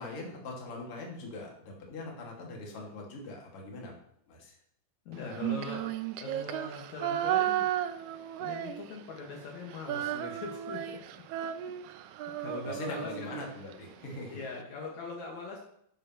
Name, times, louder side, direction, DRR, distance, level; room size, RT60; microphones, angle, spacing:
voice 1, 0.0-4.0 4.3-4.5 12.6-14.4, left 2 dB, 50° left, -1 dB, 2.8 m, -42 dB
voice 2, 5.1-5.9 6.2-7.7 8.4-11.0 12.4-13.4 14.3-15.6, left 4 dB, 70° left, -1 dB, 2.8 m, -41 dB
Female singing, 5.3-9.2 9.5-13.8, right 12 dB, 85° right, 1.3 m, -34 dB
10.5 x 10.5 x 3.0 m, 0.71 s
omnidirectional pair, 3.4 m